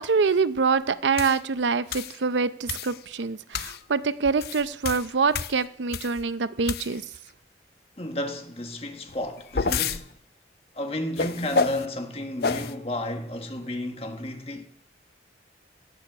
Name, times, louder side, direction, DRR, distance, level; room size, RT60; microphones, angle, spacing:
voice 1, 0.0-7.0, right 5 dB, 85° right, 0.6 m, -25 dB
sound 1, 1.2-1.4 1.9-2.2 2.7-3.0 3.5-3.8 4.3-6.2 6.6-7.2 9.1-10.0 11.2-11.9 12.4-12.7, left 4 dB, 60° left, 0.5 m, -29 dB
voice 2, 8.0-10.1 10.7-14.7, left 1 dB, 35° left, 1.4 m, -32 dB
17.5 x 6.6 x 6.8 m
head